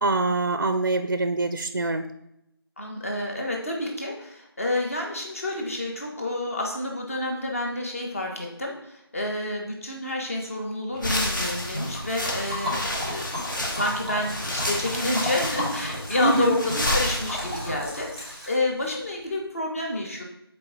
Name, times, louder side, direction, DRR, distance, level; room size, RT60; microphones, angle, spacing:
voice 1, 0.0-2.1 16.2-16.6, right 2 dB, 50° right, 9 dB, 0.5 m, -24 dB
voice 2, 2.8-13.2 13.7-20.2, left 2 dB, 35° left, 0 dB, 1.3 m, -29 dB
sound 1, 11.0-17.9, left 1 dB, 50° left, 1.5 m, -30 dB
Liquid, 11.7-18.9, left 1 dB, 10° left, 2.5 m, -34 dB
6.8 x 4.6 x 5.0 m, 0.79 s
figure-of-eight pair, 175°, 13 cm